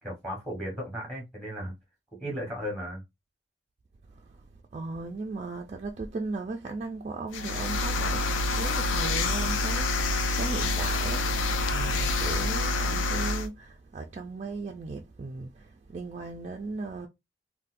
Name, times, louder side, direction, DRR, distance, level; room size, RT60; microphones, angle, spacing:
voice 1, 0.0-1.7 2.2-3.0, equal, ahead, 1.2 m, -35 dB
voice 2, 4.7-8.2 8.5-17.1, right 3 dB, 35° right, 0.3 m, -37 dB
sound 1, 7.3-13.5, left 2 dB, 80° left, 0.5 m, -27 dB
4.0 x 2.1 x 2.5 m
head